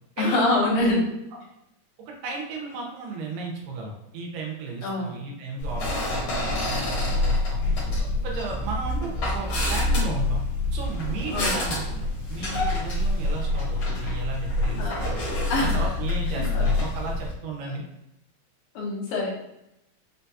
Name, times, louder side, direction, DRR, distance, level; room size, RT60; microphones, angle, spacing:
voice 1, 0.2-1.1 4.8-5.3 11.3-11.6 14.8-15.1 15.5-15.9 16.3-16.7 17.6-17.8 18.7-19.3, left 2 dB, 80° left, -3 dB, 2.7 m, -25 dB
voice 2, 2.0-7.6 8.0-10.4 10.7-15.3 15.6-17.8, right 3 dB, 85° right, 0 dB, 2.5 m, -34 dB
sound 1, 5.6-17.3, left 2 dB, 55° left, 1.5 m, -26 dB
6.1 x 2.2 x 2.7 m, 0.86 s
omnidirectional pair, 3.9 m